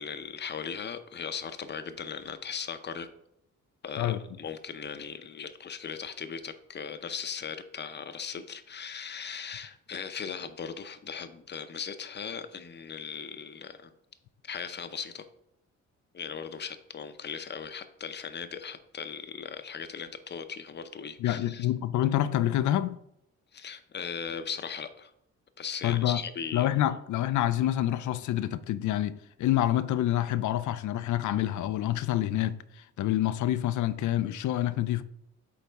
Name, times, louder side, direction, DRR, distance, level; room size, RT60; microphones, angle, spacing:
voice 1, 0.0-3.1 3.8-13.9 14.4-15.3 16.1-21.7 23.5-25.1 25.6-27.0, left 6 dB, 35° left, 0.6 m, -38 dB
voice 2, 21.2-23.0 25.8-26.2 26.5-35.0, left 13 dB, 80° left, 0.5 m, -27 dB
8.5 x 4.0 x 3.4 m
cardioid pair, 115°, 29 cm